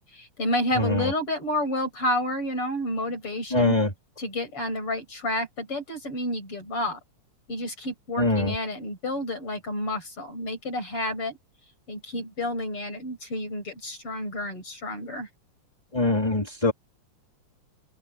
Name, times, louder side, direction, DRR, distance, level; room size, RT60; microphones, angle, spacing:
voice 1, 0.0-3.8 4.2-7.0 7.5-11.4 11.9-15.3, left 1 dB, 45° left, 8.1 m, -30 dB
voice 2, 0.8-1.1 3.5-3.9 8.2-8.5 15.9-16.7, left 2 dB, 10° left, 4.0 m, -23 dB
open air
omnidirectional pair, 3.6 m